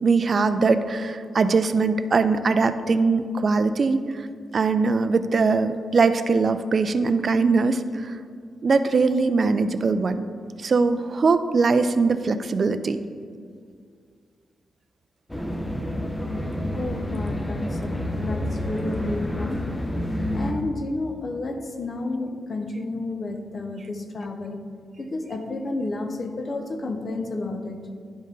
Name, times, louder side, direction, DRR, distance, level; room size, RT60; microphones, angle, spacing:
voice 1, 0.0-4.2 4.5-8.2 8.6-10.2 10.6-13.0, right 4 dB, 45° right, 11 dB, 0.4 m, -21 dB
sound 1, 15.3-20.5, left 1 dB, 10° left, 0.7 m, -28 dB
voice 2, 16.7-19.7 20.3-24.6 25.0-27.8, left 2 dB, 40° left, 5 dB, 0.8 m, -31 dB
10.5 x 5.3 x 3.8 m, 2.1 s
cardioid pair, 105°, 0 cm